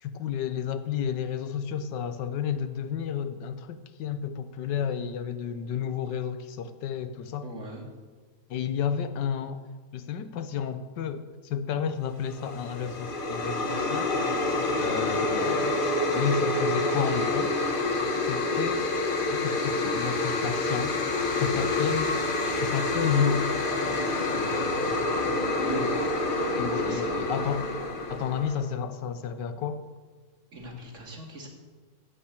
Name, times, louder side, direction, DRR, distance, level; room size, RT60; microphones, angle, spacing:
voice 1, 0.0-7.5 8.5-9.7 9.9-14.1 14.8-15.8 16.1-17.5 18.3-18.8 19.3-22.1 22.6-23.4 26.6-27.6 28.1-29.8, left 8 dB, 70° left, 11 dB, 1.4 m, -31 dB
voice 2, 7.4-7.8 14.8-15.2 21.3-21.7 25.6-25.9 26.8-27.5 30.5-31.5, right 2 dB, 40° right, 0 dB, 2.5 m, -39 dB
sound 1, 12.2-28.7, left 2 dB, 35° left, 1.0 m, -27 dB
16.5 x 5.8 x 8.2 m, 1.4 s
omnidirectional pair, 2.0 m